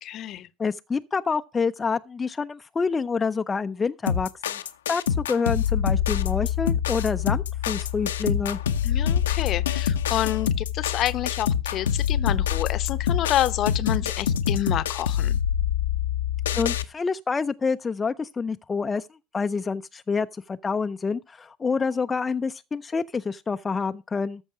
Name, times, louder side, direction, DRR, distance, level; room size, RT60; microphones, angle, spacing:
voice 1, 0.0-0.5 8.8-15.4, left 12 dB, 55° left, 0.8 m, -28 dB
voice 2, 0.6-4.6 4.9-8.6 16.5-19.1 19.3-24.4, left 5 dB, 25° left, 0.5 m, -27 dB
sound 1, 4.1-16.9, left 9 dB, 85° left, 0.7 m, -25 dB
14.0 x 6.2 x 4.9 m
hypercardioid pair, 75°, 0 cm